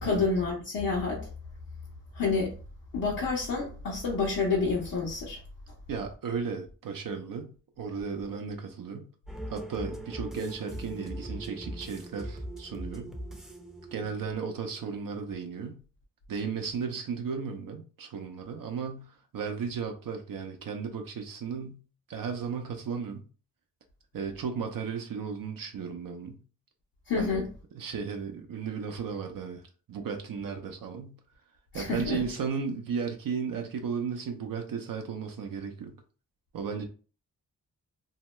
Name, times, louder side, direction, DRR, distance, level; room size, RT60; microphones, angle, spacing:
voice 1, 0.0-1.3 2.1-2.5 2.9-5.4 27.1-27.5 31.7-32.2, left 4 dB, 75° left, 1.0 m, -28 dB
voice 2, 5.9-9.1 9.5-13.2 13.9-15.8 16.3-21.8 22.1-23.3 24.1-26.4 27.2-27.4 27.7-29.6 29.9-31.2 31.7-36.0 36.5-36.8, right 6 dB, 70° right, 0.6 m, -35 dB
sound 1, 9.3-14.9, right 1 dB, ahead, 0.6 m, -41 dB
2.7 x 2.2 x 3.0 m
cardioid pair, 50°, 35 cm